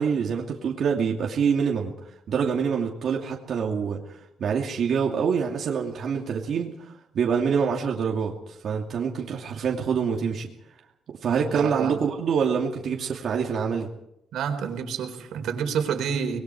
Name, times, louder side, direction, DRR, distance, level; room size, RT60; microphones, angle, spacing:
voice 1, 0.0-1.9 2.3-8.3 8.6-10.5 11.2-13.9, right 6 dB, 55° right, -1 dB, 2.6 m, -26 dB
voice 2, 11.5-12.0 14.3-16.4, right 7 dB, 85° right, 5 dB, 3.9 m, -28 dB
26.5 x 20.5 x 4.9 m, 0.80 s
cardioid pair, 140°, 0 cm